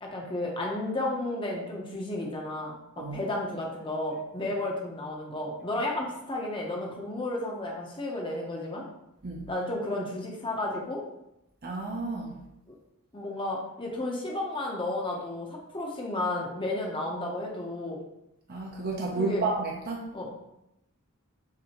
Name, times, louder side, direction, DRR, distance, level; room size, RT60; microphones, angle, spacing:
voice 1, 0.0-8.9 9.5-11.0 12.7-12.8 13.1-18.0 19.2-19.4 20.1-20.3, left 2 dB, 20° left, -1 dB, 0.8 m, -32 dB
voice 2, 11.6-12.4 18.5-20.0, right 3 dB, 45° right, -1 dB, 0.6 m, -31 dB
5.8 x 2.7 x 3.0 m, 0.86 s
head